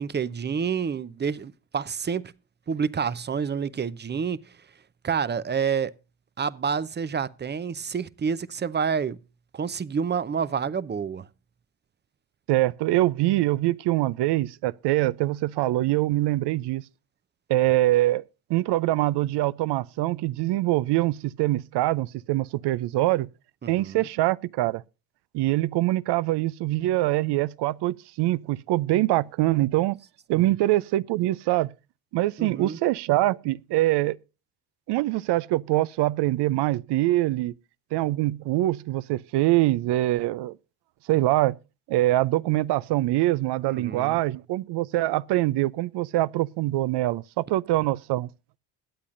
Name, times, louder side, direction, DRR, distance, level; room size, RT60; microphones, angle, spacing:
voice 1, 0.0-2.3 2.7-4.4 5.0-5.9 6.4-9.2 9.5-11.3 23.6-24.0 30.3-30.5 32.4-32.8 43.7-44.2, right 6 dB, 25° right, 0.6 m, -28 dB
voice 2, 12.5-16.8 17.5-18.2 18.5-23.3 23.7-24.8 25.3-30.0 30.3-31.7 32.1-34.2 34.9-37.5 37.9-40.6 41.1-41.6 41.9-48.3, right 16 dB, 65° right, 0.6 m, -24 dB
21.5 x 8.4 x 2.5 m
supercardioid pair, 70°, 44 cm